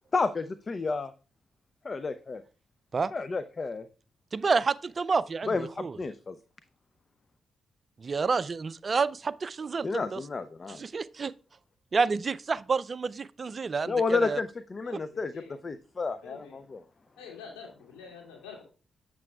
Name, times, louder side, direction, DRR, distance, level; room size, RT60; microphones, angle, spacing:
voice 1, 0.1-1.1 1.8-2.4 3.1-3.9 5.5-6.4 9.8-10.8 13.9-15.3 15.6-16.8, left 4 dB, 45° left, 0.5 m, -31 dB
voice 2, 4.3-6.0 8.0-10.2 10.7-11.3 11.9-14.4 14.9-15.0, right 4 dB, 50° right, 0.4 m, -29 dB
voice 3, 14.9-15.6 16.2-16.6 17.2-18.6, left 6 dB, 80° left, 2.6 m, -47 dB
7.5 x 7.4 x 2.3 m
hypercardioid pair, 40°, 0 cm